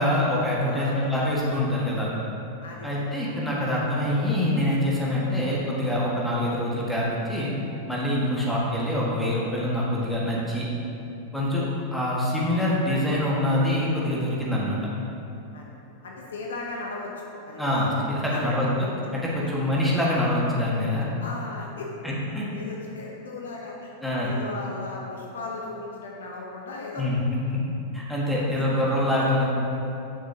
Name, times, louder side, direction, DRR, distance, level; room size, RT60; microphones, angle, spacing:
voice 1, 0.0-2.1 2.8-7.5 7.9-10.7 11.3-14.8 17.6-18.7 19.1-21.1 22.0-22.5 24.0-24.3 27.0-27.6 27.9-29.5, left 1 dB, ahead, -7 dB, 1.8 m, -25 dB
voice 2, 0.7-1.1 2.6-3.0 3.4-3.5 8.3-8.5 15.5-15.7 16.0-17.7 18.3-18.4 21.2-21.9 22.5-23.9 24.2-27.1 28.3-28.6 29.2-29.3, left 3 dB, 65° left, -1 dB, 0.9 m, -37 dB
10.5 x 6.0 x 2.9 m, 2.8 s
figure-of-eight pair, 90°, 0 cm